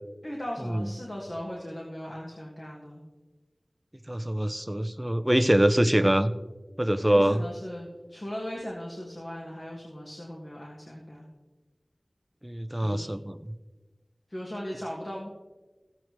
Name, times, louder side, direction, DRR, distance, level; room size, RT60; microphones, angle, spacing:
voice 1, 0.2-3.0 7.1-11.3 12.8-13.1 14.3-15.3, equal, 45° left, -3 dB, 1.7 m, -38 dB
voice 2, 4.1-6.3 6.8-7.4 12.4-13.5, right 1 dB, 15° right, 11 dB, 0.5 m, -24 dB
15.0 x 8.0 x 3.0 m, 1.2 s
wide cardioid pair, 55°, 0 cm